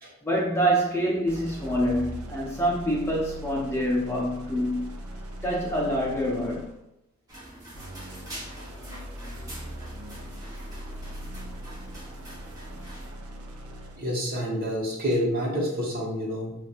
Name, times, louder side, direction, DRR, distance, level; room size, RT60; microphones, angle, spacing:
voice 1, 0.2-4.9 5.4-6.7, equal, 10° left, -3 dB, 0.5 m, -26 dB
sound 1, 1.3-6.9 7.7-14.1, equal, 70° right, 0.7 m, -40 dB
sound 2, 7.3-13.1, right 1 dB, 15° right, 1.2 m, -44 dB
voice 2, 14.0-16.6, equal, 45° right, -4 dB, 1.2 m, -28 dB
5.6 x 2.5 x 2.5 m, 0.83 s
head